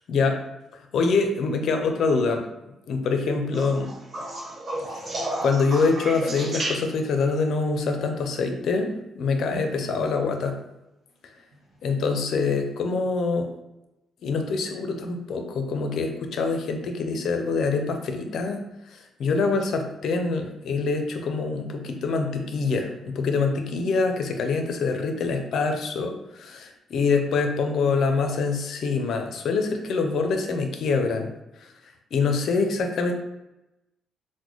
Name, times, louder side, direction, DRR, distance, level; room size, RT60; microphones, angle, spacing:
voice 1, 0.1-0.4 0.9-2.4 2.9-3.9 4.8-5.1 5.4-10.6 11.8-13.5 14.2-18.6 18.9-31.3 31.6-31.7 32.1-33.2, left 4 dB, 70° left, 5 dB, 0.5 m, -25 dB
sound 1, 3.5-7.2 9.4-9.9 11.5-11.6, right 1 dB, 50° right, 0.7 m, -32 dB
3.8 x 2.1 x 3.0 m, 0.95 s
cardioid pair, 90°, 0 cm